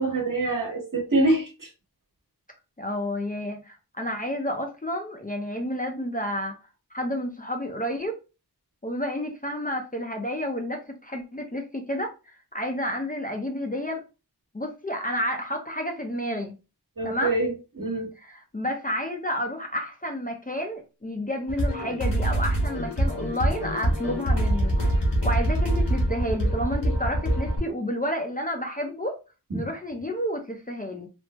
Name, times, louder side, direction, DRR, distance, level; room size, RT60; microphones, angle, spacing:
voice 1, 0.0-1.7 17.0-17.5 17.8-18.1 29.5-29.7, right 2 dB, 50° right, 1.3 m, -25 dB
voice 2, 2.8-6.5 6.9-8.2 8.8-14.0 14.5-16.5 17.0-17.3 18.2-29.2 29.5-31.1, equal, 20° left, 0.5 m, -30 dB
sound 1, 21.5-27.6, right 1 dB, 80° left, 1.4 m, -24 dB
3.4 x 2.0 x 2.9 m
wide cardioid pair, 45°, 41 cm